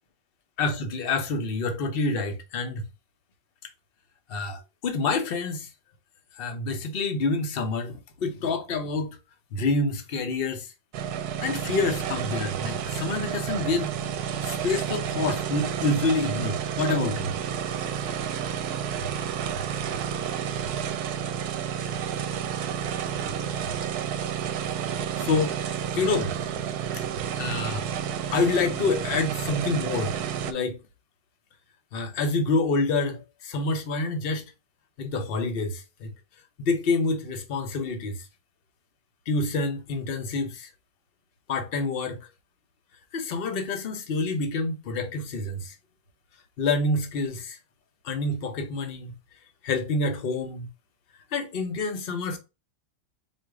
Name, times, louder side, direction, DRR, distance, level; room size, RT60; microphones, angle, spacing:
voice 1, 0.6-2.8 4.3-5.7 6.4-9.2 9.5-10.7 11.4-13.9 14.4-17.3 23.1-23.7 25.2-25.6 25.9-26.3 26.9-27.0 27.3-27.9 28.3-30.1 30.4-30.8 31.9-34.4 35.0-36.1 36.6-38.3 39.3-40.7 41.5-42.2 43.1-45.8 46.6-47.6 48.0-49.1 49.6-50.7 51.3-52.4, left 3 dB, 45° left, 0.8 m, -27 dB
sound 1, 10.9-30.5, right 8 dB, 75° right, 1.1 m, -30 dB
4.3 x 2.5 x 4.7 m
omnidirectional pair, 1.8 m